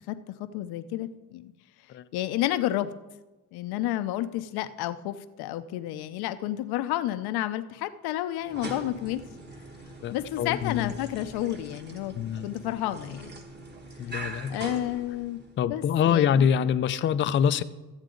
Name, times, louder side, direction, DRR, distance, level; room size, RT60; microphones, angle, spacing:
voice 1, 0.1-1.5 2.1-2.9 3.5-9.2 10.1-12.1 12.4-13.3 14.5-15.4 15.6-16.5, left 13 dB, 75° left, 11 dB, 0.7 m, -31 dB
sound 1, 8.4-15.6, right 2 dB, 25° right, 1.3 m, -42 dB
voice 2, 10.0-10.9 12.2-12.5 14.0-14.6 15.6-17.6, left 8 dB, 30° left, 12 dB, 0.4 m, -25 dB
14.0 x 8.1 x 3.8 m, 1.1 s
cardioid pair, 125°, 38 cm